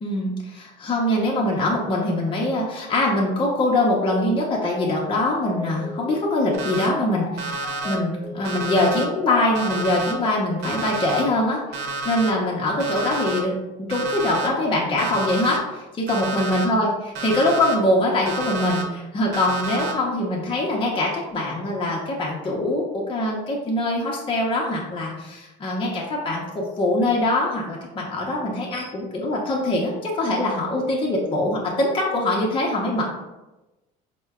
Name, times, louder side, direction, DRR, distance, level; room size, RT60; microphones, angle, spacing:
voice 1, 0.0-33.0, left 1 dB, 30° left, -3 dB, 0.8 m, -23 dB
sound 1, 4.3-10.8, left 1 dB, 75° left, 0.5 m, -36 dB
Alarm, 6.5-6.9 7.4-7.9 8.4-9.0 9.6-10.1 10.6-11.2 11.7-12.3 12.8-13.4 13.9-14.5 15.0-15.6 16.1-16.7 17.2-17.7 18.3-18.8 19.3-19.9, right 3 dB, 60° right, 0.8 m, -30 dB
4.3 x 2.2 x 3.6 m, 1.1 s
supercardioid pair, 95°, 18 cm